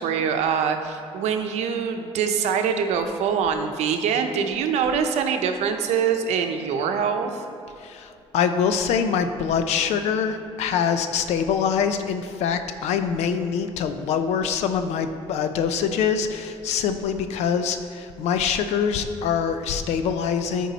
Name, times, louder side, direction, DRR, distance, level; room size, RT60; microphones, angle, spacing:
voice 1, 0.0-7.4, right 7 dB, 80° right, 6 dB, 0.7 m, -24 dB
voice 2, 7.8-20.7, left 7 dB, 80° left, 9 dB, 0.6 m, -24 dB
13.5 x 4.6 x 4.1 m, 2.6 s
cardioid pair, 165°, 11 cm